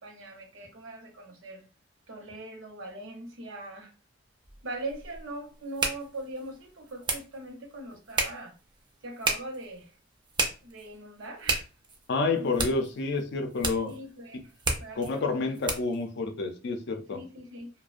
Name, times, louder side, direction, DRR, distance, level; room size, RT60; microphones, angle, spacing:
voice 1, 0.0-1.7 2.1-3.9 4.6-8.5 9.0-10.0 10.6-11.7 12.4-12.7 13.8-14.5 14.8-15.4 17.1-17.7, right 2 dB, 75° right, 0.7 m, -41 dB
sound 1, 4.4-16.0, right 3 dB, 25° right, 0.4 m, -34 dB
voice 2, 12.1-14.0 15.0-17.2, left 3 dB, 60° left, 0.4 m, -29 dB
2.4 x 2.1 x 2.4 m
head